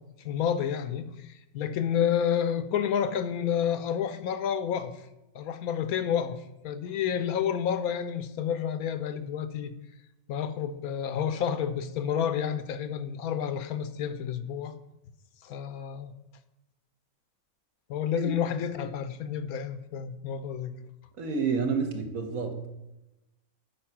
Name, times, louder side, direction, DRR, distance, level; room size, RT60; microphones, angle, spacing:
voice 1, 0.2-4.9 5.3-9.7 10.3-14.7 15.4-16.1 17.9-20.7, left 8 dB, 80° left, 1.1 m, -30 dB
voice 2, 21.2-22.7, right 5 dB, 65° right, 1.6 m, -29 dB
8.6 x 5.4 x 5.8 m
omnidirectional pair, 1.6 m